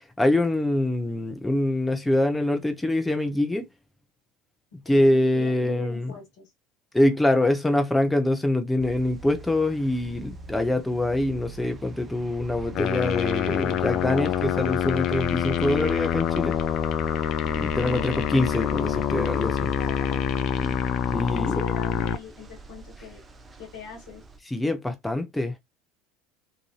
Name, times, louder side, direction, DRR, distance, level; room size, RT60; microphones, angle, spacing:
voice 1, 0.2-3.7 4.9-6.1 6.9-16.5 17.4-19.7 21.1-21.6 24.5-25.6, left 1 dB, 10° left, 0.7 m, -24 dB
voice 2, 4.8-6.5 19.8-21.0 21.3-23.2 23.6-24.5, left 3 dB, 65° left, 1.3 m, -42 dB
sound 1, 8.8-24.4, right 4 dB, 25° right, 0.6 m, -42 dB
sound 2, 12.7-22.2, left 10 dB, 50° left, 0.4 m, -26 dB
2.9 x 2.6 x 2.3 m
hypercardioid pair, 70°, 0 cm